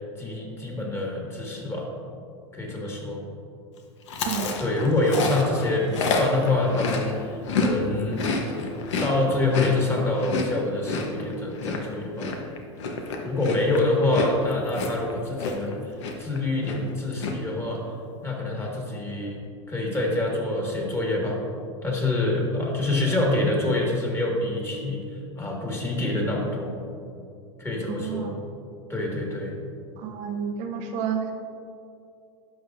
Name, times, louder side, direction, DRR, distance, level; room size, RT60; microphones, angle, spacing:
voice 1, 0.2-1.8 2.5-3.2 4.6-8.2 9.0-12.3 13.2-15.8 16.2-17.8 18.2-19.4 19.7-21.4 21.8-25.0 25.4-26.8 27.6-28.3 28.9-29.5, left 2 dB, 15° left, -1 dB, 1.7 m, -26 dB
Chewing mastication, 4.1-7.7 8.0-15.7 16.0-16.4 16.6-17.3, left 3 dB, 75° left, 1.0 m, -29 dB
voice 2, 4.2-4.6 27.9-28.4 30.0-31.3, right 8 dB, 55° right, 4 dB, 0.7 m, -30 dB
11.0 x 6.2 x 2.6 m, 2.4 s
hypercardioid pair, 105°, 15 cm